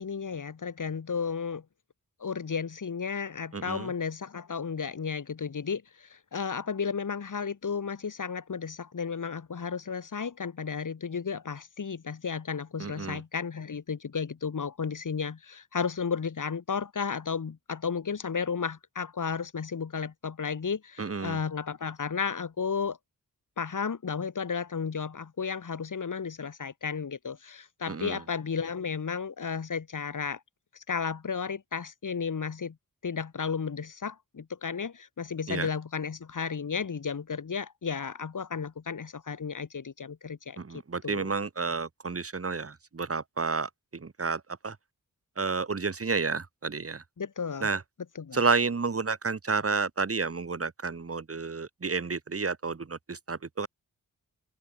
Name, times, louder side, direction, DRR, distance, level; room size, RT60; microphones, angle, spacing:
voice 1, 0.0-1.6 2.2-23.0 23.6-30.4 30.7-32.8 33.0-40.6 41.0-41.3 47.2-47.7 48.2-48.4, left 6 dB, 65° left, 7.3 m, -33 dB
voice 2, 3.5-3.9 12.8-13.2 21.0-21.4 27.9-28.2 35.5-35.7 40.6-44.8 45.4-47.0 47.6-47.8 48.3-53.7, right 4 dB, 40° right, 6.0 m, -31 dB
open air
wide cardioid pair, 155°, 34 cm